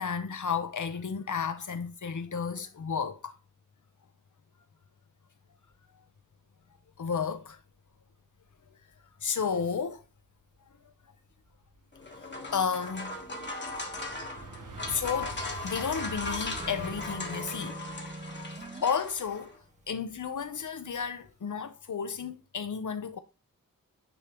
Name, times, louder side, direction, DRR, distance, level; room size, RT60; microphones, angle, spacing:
voice 1, 0.0-3.4 7.0-7.6 9.2-10.0 12.5-13.2 14.4-14.5 14.9-15.4 15.6-17.8 18.8-19.5 19.9-23.2, left 6 dB, 60° left, 0.8 m, -32 dB
sound 1, 10.8-10.9 11.4-20.4 20.8-21.2, right 3 dB, 60° right, 1.3 m, -46 dB
sound 2, 11.9-19.5, left 3 dB, 30° left, 1.4 m, -38 dB
sound 3, 16.6-18.9, right 1 dB, 20° right, 0.4 m, -43 dB
9.8 x 3.5 x 3.0 m
wide cardioid pair, 115°, 35 cm